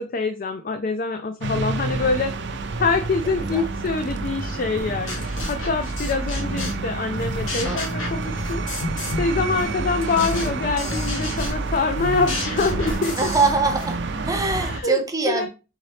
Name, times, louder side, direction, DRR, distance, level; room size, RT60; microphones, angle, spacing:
voice 1, 0.1-8.6 9.2-13.3 14.6-15.5, left 4 dB, 40° left, 0.4 m, -25 dB
sound 1, 1.4-14.8, right 3 dB, 55° right, 0.5 m, -30 dB
sound 2, 1.9-13.7, right 2 dB, 20° left, 1.0 m, -36 dB
voice 2, 3.2-3.7 7.6-7.8 10.8-11.0 13.2-14.0 14.2-15.5, right 3 dB, 15° right, 0.6 m, -23 dB
sound 3, 4.8-6.9 7.2-9.3 9.6-13.9, left 2 dB, 75° left, 1.5 m, -31 dB
4.0 x 3.9 x 3.3 m
head